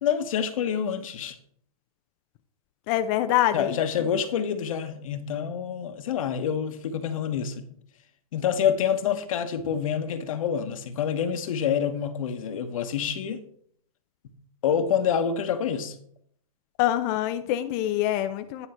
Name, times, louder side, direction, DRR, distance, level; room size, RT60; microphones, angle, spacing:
voice 1, 0.0-1.4 3.5-7.7 8.3-13.4 14.2-14.3 14.6-15.9, left 8 dB, 60° left, 1.2 m, -27 dB
voice 2, 2.9-4.1 16.8-18.7, left 13 dB, 30° left, 0.5 m, -25 dB
10.0 x 4.3 x 5.7 m
hypercardioid pair, 140°, 20 cm